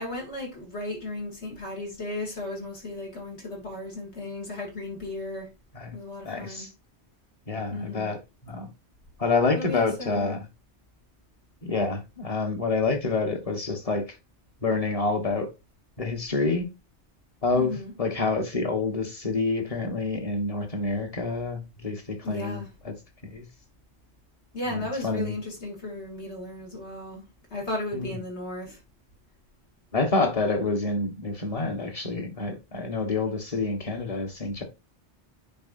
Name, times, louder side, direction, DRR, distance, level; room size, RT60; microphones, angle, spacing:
voice 1, 0.0-5.5 5.9-6.7 7.7-8.1 9.5-10.4 17.5-17.9 22.2-22.7 24.5-27.2 27.5-28.8, left 2 dB, 75° left, 3.1 m, -35 dB
voice 2, 6.2-6.7 7.5-8.2 8.4-8.7 9.2-10.4 11.6-14.0 14.6-15.5 16.0-16.7 17.4-22.6 22.8-22.9 23.2-23.4 25.0-25.3 27.9-28.1 29.9-34.6, left 3 dB, 35° left, 1.3 m, -27 dB
9.4 x 4.8 x 2.6 m
omnidirectional pair, 1.1 m